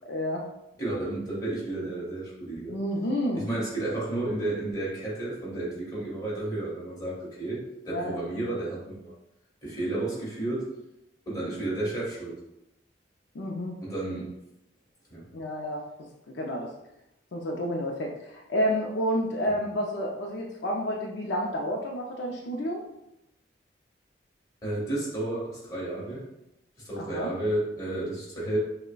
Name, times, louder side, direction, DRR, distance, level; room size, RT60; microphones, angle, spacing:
voice 1, 0.1-0.4 2.7-3.5 7.9-8.2 13.3-13.7 15.3-15.8 16.3-16.7 17.3-22.8 27.0-27.3, equal, 70° left, -1 dB, 0.4 m, -30 dB
voice 2, 0.8-2.7 3.3-9.1 9.6-10.7 11.3-12.3 13.8-14.3 15.1-15.2 19.4-19.5 24.6-26.2 26.8-28.6, right 2 dB, 20° left, -7 dB, 1.4 m, -32 dB
6.2 x 2.1 x 2.2 m, 0.87 s
head